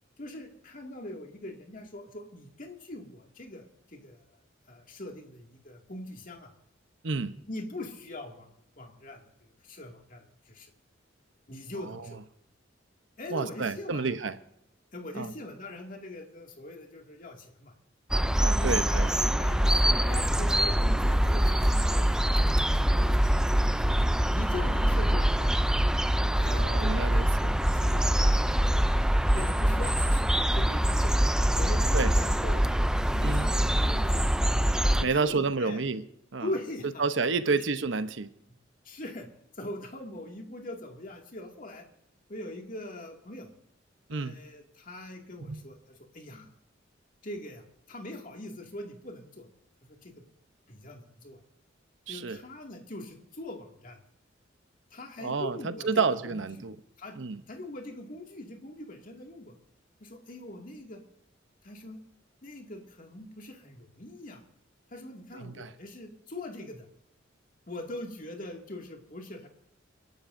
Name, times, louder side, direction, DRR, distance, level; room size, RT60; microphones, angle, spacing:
voice 1, 0.2-4.3 4.7-6.5 7.5-10.7 11.5-12.2 13.2-14.1 14.9-17.7 18.6-23.9 24.3-25.6 26.3-28.8 29.3-30.3 30.5-31.1 31.6-32.6 33.1-34.3 35.0-35.8 36.4-37.1 37.5-37.6 38.8-39.3 39.5-41.9 42.3-43.5 44.1-46.5 47.2-49.5 49.9-50.1 50.7-51.4 52.1-54.0 54.9-55.9 56.2-56.4 57.0-57.2 57.5-59.5 60.0-61.0 61.6-62.0 62.4-64.4 64.9-66.9 67.7-69.5, left 1 dB, 45° left, 2.3 m, -42 dB
voice 2, 7.0-7.3 11.8-12.2 13.3-14.4 15.1-15.3 18.4-19.1 26.5-27.6 31.9-32.1 33.2-33.5 35.0-36.0 36.3-36.5 37.0-38.3 44.1-44.4 45.4-45.6 52.1-52.4 55.2-56.8 57.1-57.4 65.3-65.7, right 4 dB, 70° right, 0.9 m, -30 dB
sound 1, 18.1-35.1, right 1 dB, 5° right, 0.4 m, -24 dB
29.0 x 12.0 x 2.7 m
head